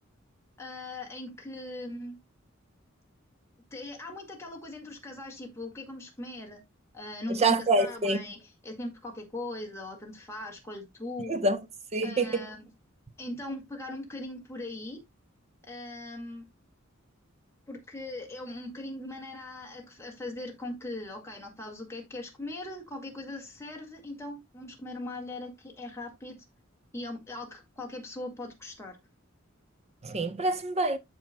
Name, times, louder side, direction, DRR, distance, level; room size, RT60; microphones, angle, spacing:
voice 1, 0.6-2.2 3.7-6.6 6.9-11.3 12.0-12.7 13.2-15.0 15.7-16.4 17.7-26.4 26.9-29.0, left 2 dB, 15° left, 2.2 m, -40 dB
voice 2, 7.4-8.2 11.3-11.6 11.9-12.5 30.0-31.0, right 2 dB, 30° right, 0.8 m, -26 dB
13.5 x 4.7 x 2.2 m
head